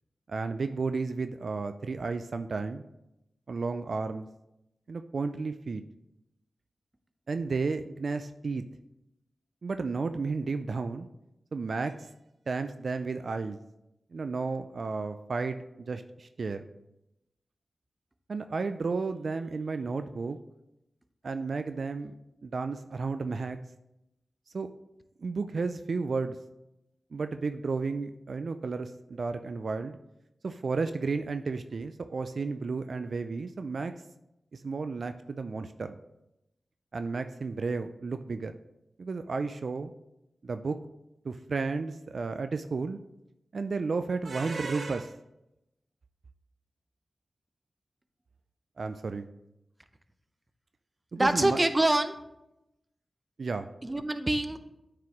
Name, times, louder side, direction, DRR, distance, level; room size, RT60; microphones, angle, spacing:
voice 1, 0.3-2.8 3.5-4.3 4.9-5.8 7.3-8.6 9.6-11.1 11.5-12.1 12.5-13.6 14.1-16.7 18.3-20.4 21.2-22.1 22.4-23.6 24.5-24.7 25.2-26.4 27.1-30.0 30.4-33.9 34.5-36.0 36.9-38.5 39.0-39.9 40.4-40.8 41.2-43.0 43.5-45.2 48.8-49.3 51.1-51.6 53.4-53.7, right 4 dB, 65° right, 9 dB, 0.3 m, -32 dB
voice 2, 51.1-52.1 53.8-54.6, right 1 dB, 25° right, 9 dB, 0.6 m, -25 dB
9.1 x 4.9 x 3.1 m, 0.88 s
cardioid pair, 55°, 0 cm